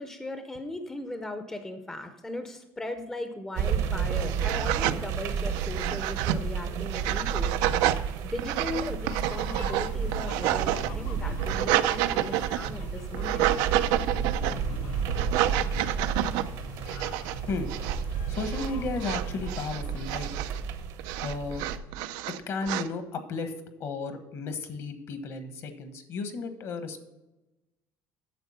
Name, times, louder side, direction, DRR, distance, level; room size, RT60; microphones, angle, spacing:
voice 1, 0.0-13.5, left 2 dB, 10° left, 7 dB, 0.6 m, -38 dB
sound 1, 3.6-21.8, right 6 dB, 70° right, 1.0 m, -32 dB
sound 2, 3.6-3.7 4.1-5.0 5.5-6.4 6.9-8.0 8.4-10.9 11.3-12.8 13.1-14.6 15.1-16.4 16.9-17.4 17.7-18.0 18.3-18.7 19.0-20.6 21.0-22.9, right 13 dB, 85° right, 0.5 m, -29 dB
sound 3, 9.0-20.4, left 2 dB, 80° left, 1.4 m, -43 dB
voice 2, 18.3-20.3 21.2-21.6 22.5-23.5 23.8-27.0, left 4 dB, 50° left, 8 dB, 1.2 m, -34 dB
9.1 x 6.8 x 5.6 m, 1.0 s
cardioid pair, 145°, 6 cm